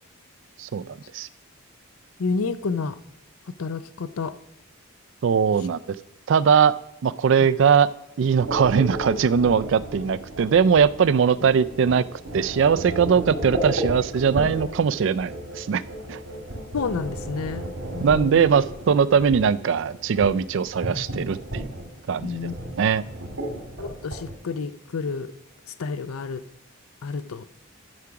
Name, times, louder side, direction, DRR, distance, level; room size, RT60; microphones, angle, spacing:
voice 1, 2.2-3.0 3.6-4.4 7.4-7.5 16.7-18.5 22.2-22.6 23.8-25.3 25.8-26.4 27.0-27.4, left 4 dB, 75° left, 14 dB, 0.5 m, -30 dB
voice 2, 5.2-6.0 6.3-6.7 7.0-7.9 8.2-12.0 12.3-15.8 16.1-16.2 18.0-21.7 22.1-22.5 22.8-23.0, right 6 dB, 55° right, 16 dB, 0.3 m, -20 dB
sound 1, 8.4-24.4, right 1 dB, 90° right, 1.9 m, -34 dB
12.0 x 4.9 x 5.8 m, 0.84 s
head